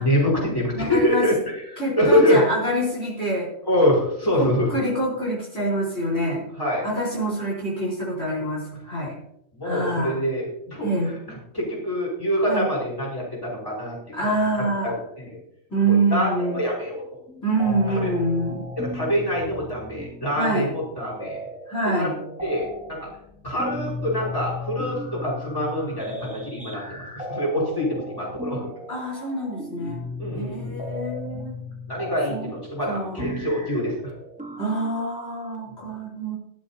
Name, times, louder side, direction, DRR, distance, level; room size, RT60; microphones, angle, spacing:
voice 1, 0.0-1.3 1.7-2.5 3.7-4.7 6.6-6.9 9.5-10.9 11.5-14.0 14.8-15.4 15.9-16.3 16.5-17.0 17.9-18.0 18.8-21.4 21.8-22.1 22.4-23.1 23.4-28.7 30.2-30.7 31.9-33.9 35.8-35.9, equal, 15° left, -5 dB, 5.4 m, -25 dB
voice 2, 0.7-1.3 1.8-3.5 4.3-6.4 6.8-9.2 9.6-10.2 10.8-11.1 12.5-12.7 14.1-14.9 15.7-16.6 17.4-18.6 20.4-20.7 21.7-22.2 28.9-30.0 30.3-31.5 32.3-32.5 32.8-33.4 34.6-36.4, right 1 dB, 50° left, -5 dB, 4.7 m, -26 dB
sound 1, 16.4-17.0 17.3-35.6, left 1 dB, 5° right, 1.5 m, -36 dB
19.5 x 12.0 x 2.9 m, 0.81 s
omnidirectional pair, 1.4 m